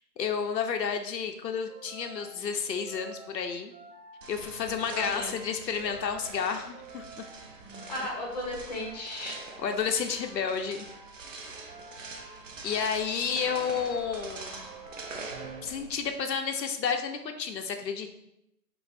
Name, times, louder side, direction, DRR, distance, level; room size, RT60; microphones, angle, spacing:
voice 1, 0.0-3.7 4.3-7.0 9.6-10.9 12.6-14.7 15.6-18.1, left 6 dB, 85° left, 5 dB, 0.7 m, -31 dB
sound 1, 1.7-16.2, right 3 dB, 75° right, 1.2 m, -51 dB
sound 2, 4.2-16.1, right 3 dB, 50° right, 0.5 m, -44 dB
voice 2, 4.9-5.3 7.6-9.4, left 1 dB, 25° left, -2 dB, 0.7 m, -35 dB
5.2 x 2.0 x 4.2 m, 0.82 s
hypercardioid pair, 165°, 49 cm